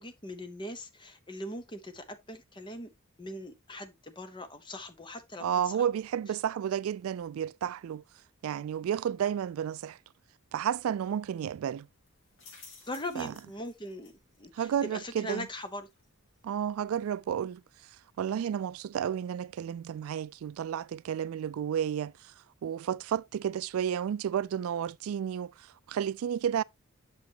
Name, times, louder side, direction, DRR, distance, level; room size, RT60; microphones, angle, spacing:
voice 1, 0.0-2.9 3.2-5.8 12.9-14.1 14.4-15.9, left 1 dB, 20° left, 0.9 m, -40 dB
voice 2, 5.4-8.0 8.4-10.0 10.5-11.9 13.2-13.3 14.5-15.5 16.4-17.6 18.2-22.3 22.6-26.6, right 9 dB, 90° right, 0.3 m, -32 dB
sound 1, 10.4-21.1, left 4 dB, 75° left, 3.4 m, -61 dB
8.1 x 6.2 x 2.9 m
head